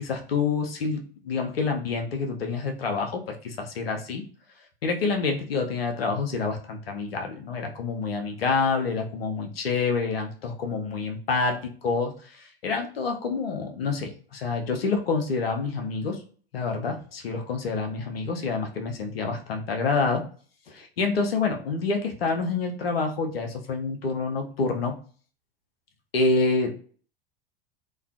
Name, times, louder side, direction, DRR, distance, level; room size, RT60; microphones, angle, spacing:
voice 1, 0.0-4.2 4.8-16.2 16.5-20.2 20.7-24.9 26.1-26.7, left 4 dB, 75° left, 3 dB, 0.6 m, -27 dB
2.3 x 2.2 x 2.4 m, 0.43 s
figure-of-eight pair, 80°, 30 cm